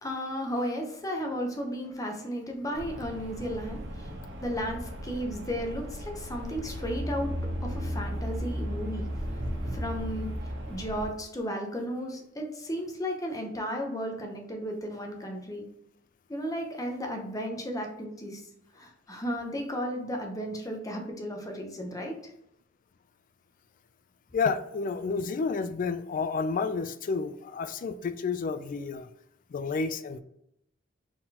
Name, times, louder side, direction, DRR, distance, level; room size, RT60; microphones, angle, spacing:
voice 1, 0.0-7.3 7.6-9.1 9.7-10.3 10.7-15.6 16.3-18.4 18.7-22.3, equal, 20° left, 2 dB, 0.7 m, -34 dB
sound 1, 2.7-11.1, equal, 65° right, 0.9 m, -39 dB
sound 2, 6.6-10.9 11.4-11.5, equal, 15° right, 0.5 m, -35 dB
voice 2, 24.3-29.1 29.5-30.2, left 4 dB, 45° left, 11 dB, 0.3 m, -30 dB
4.3 x 3.7 x 2.8 m, 0.79 s
head